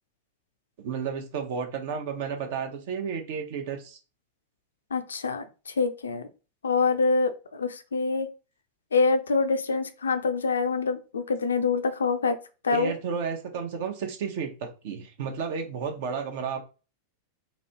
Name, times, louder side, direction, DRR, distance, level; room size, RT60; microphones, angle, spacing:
voice 1, 0.8-4.0 12.7-16.6, right 6 dB, 50° right, 4 dB, 0.8 m, -32 dB
voice 2, 4.9-6.3 6.6-8.3 8.9-12.4 12.6-12.9, left 4 dB, 70° left, 10 dB, 0.4 m, -25 dB
3.0 x 2.7 x 2.8 m, 0.32 s
figure-of-eight pair, 90°, 0 cm